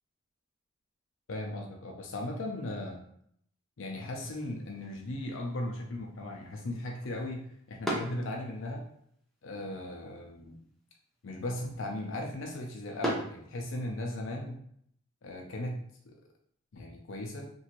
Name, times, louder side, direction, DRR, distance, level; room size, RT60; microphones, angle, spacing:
voice 1, 1.3-3.0 3.8-8.8 9.4-10.6 11.2-14.6 15.2-15.8 16.0-16.1 16.7-17.5, left 1 dB, 75° left, 1 dB, 0.5 m, -37 dB
sound 1, 4.1-14.1, right 1 dB, ahead, 0.7 m, -43 dB
3.0 x 2.6 x 2.9 m, 0.67 s
head